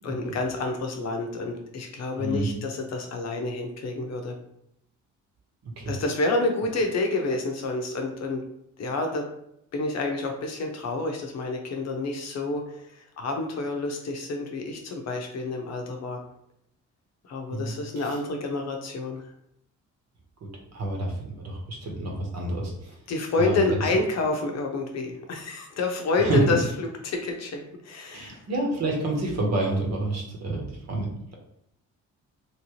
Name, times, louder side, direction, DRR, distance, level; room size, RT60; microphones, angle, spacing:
voice 1, 0.0-4.3 5.9-8.4 8.8-9.3 9.7-16.2 17.2-19.3 23.1-28.4, left 3 dB, 60° left, 3 dB, 0.7 m, -28 dB
voice 2, 2.2-2.5 5.6-6.0 17.5-17.7 18.0-18.1 20.4-22.9 23.4-23.8 26.2-26.4 28.1-31.3, right 2 dB, 60° right, 0 dB, 1.1 m, -29 dB
3.2 x 2.8 x 3.0 m, 0.76 s
cardioid pair, 90°, 30 cm